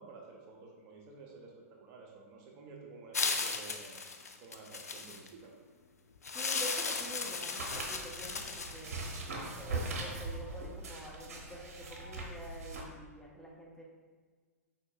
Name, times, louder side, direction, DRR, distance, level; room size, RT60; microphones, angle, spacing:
voice 1, 0.0-4.0 4.4-5.5, right 4 dB, 35° right, 0 dB, 0.9 m, -52 dB
sound 1, 3.1-5.3 6.2-9.2, left 4 dB, 80° left, 0.4 m, -36 dB
voice 2, 6.3-9.1 9.6-13.8, right 1 dB, 5° left, -4 dB, 0.8 m, -47 dB
sound 2, 6.9-12.2, left 1 dB, 30° left, 1.4 m, -58 dB
sound 3, 7.6-12.8, right 2 dB, 65° right, 1.0 m, -41 dB
4.8 x 4.2 x 2.5 m, 1.5 s
figure-of-eight pair, 105°, 8 cm